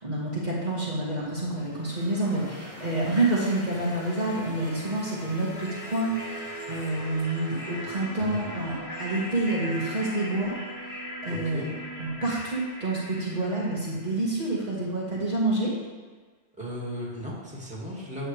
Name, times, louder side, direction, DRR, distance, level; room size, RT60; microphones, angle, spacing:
voice 1, 0.0-10.5 11.2-11.7 12.0-15.8, right 2 dB, 45° right, -7 dB, 1.8 m, -28 dB
sound 1, 1.6-14.5, equal, 35° left, 1.4 m, -40 dB
voice 2, 2.3-2.7 8.2-8.5 11.3-11.7 16.6-18.3, equal, 5° right, -6 dB, 2.1 m, -37 dB
9.2 x 7.8 x 3.3 m, 1.4 s
omnidirectional pair, 1.1 m